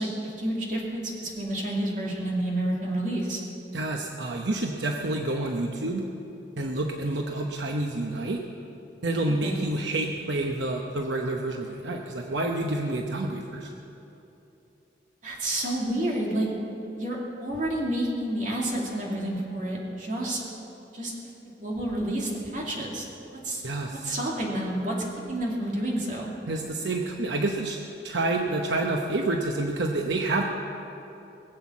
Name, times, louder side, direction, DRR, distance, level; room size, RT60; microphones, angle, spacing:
voice 1, 0.0-3.4 9.4-9.6 15.2-16.5 17.0-20.4 20.9-21.1 21.6-23.1 23.4-23.6 23.9-24.9 25.3-26.3, right 1 dB, 45° right, -3 dB, 2.7 m, -29 dB
voice 2, 3.7-6.1 6.6-8.4 9.0-13.7 23.6-24.1 26.5-27.8 28.0-30.4, right 2 dB, 80° right, 2 dB, 0.9 m, -28 dB
20.5 x 7.8 x 7.3 m, 2.9 s
head